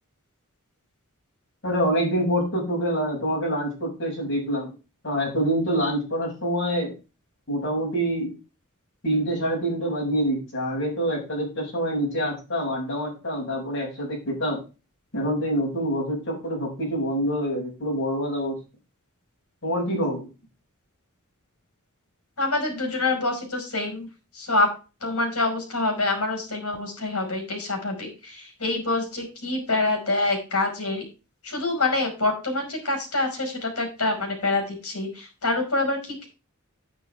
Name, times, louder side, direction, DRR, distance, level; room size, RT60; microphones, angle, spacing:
voice 1, 1.6-4.7 5.0-6.9 7.5-8.3 9.0-14.6 15.1-18.5 19.6-20.3, equal, 55° left, -1 dB, 6.6 m, -26 dB
voice 2, 22.4-24.1 24.3-24.7 25.0-31.0 31.4-36.3, left 2 dB, 75° left, 3 dB, 5.2 m, -26 dB
10.5 x 9.6 x 3.5 m, 0.31 s
head